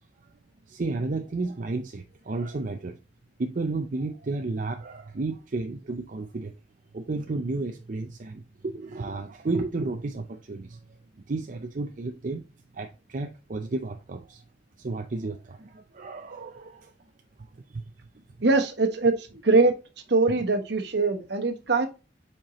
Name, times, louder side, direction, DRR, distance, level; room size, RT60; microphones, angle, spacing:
voice 1, 0.7-3.0 3.4-6.6 6.9-10.8 11.2-12.5 12.7-14.4 14.8-16.9 17.4-17.8, right 3 dB, 45° right, 0.5 m, -32 dB
voice 2, 18.4-19.7 20.1-21.9, right 3 dB, 65° right, 1.1 m, -22 dB
7.3 x 4.5 x 3.0 m
head